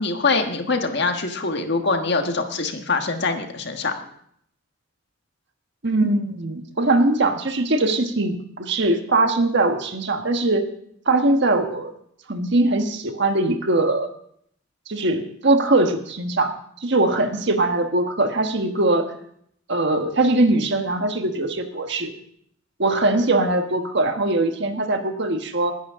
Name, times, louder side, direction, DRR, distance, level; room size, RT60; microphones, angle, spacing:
voice 1, 0.0-3.9, left 3 dB, 55° left, 5 dB, 1.5 m, -23 dB
voice 2, 5.8-10.7 11.1-11.9 12.3-14.1 14.9-16.5 16.8-19.1 19.7-22.1 22.8-25.7, right 2 dB, 60° right, 6 dB, 1.4 m, -21 dB
20.5 x 11.0 x 3.7 m, 0.68 s
head